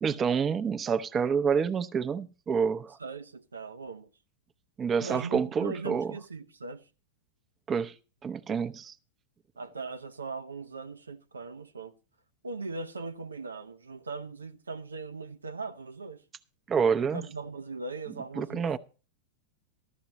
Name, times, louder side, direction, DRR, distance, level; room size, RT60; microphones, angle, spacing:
voice 1, 0.0-3.0 4.8-6.1 7.7-7.9 8.2-8.9 16.7-17.2 18.4-18.8, right 6 dB, 25° right, 0.8 m, -28 dB
voice 2, 3.0-4.1 5.0-6.9 9.6-12.0 12.4-16.2 17.1-18.8, right 3 dB, 90° right, 0.8 m, -39 dB
14.0 x 12.5 x 3.0 m
hypercardioid pair, 100°, 0 cm